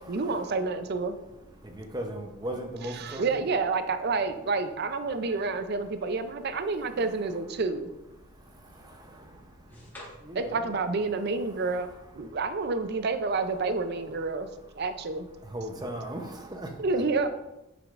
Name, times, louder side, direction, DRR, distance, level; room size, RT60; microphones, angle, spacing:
voice 1, 0.1-1.2 2.9-7.9 10.4-11.9 12.1-14.5 14.8-15.3 16.8-17.3, right 3 dB, 50° right, 9 dB, 0.5 m, -29 dB
voice 2, 1.1-2.0 5.1-5.4 5.9-6.3 6.6-6.9 8.1-10.4, left 1 dB, 10° left, -8 dB, 2.0 m, -53 dB
voice 3, 1.6-3.4 8.4-9.5 10.3-10.6 11.6-11.7 15.4-16.9, right 1 dB, 20° right, 3 dB, 0.7 m, -38 dB
9.2 x 5.0 x 2.5 m, 0.97 s
head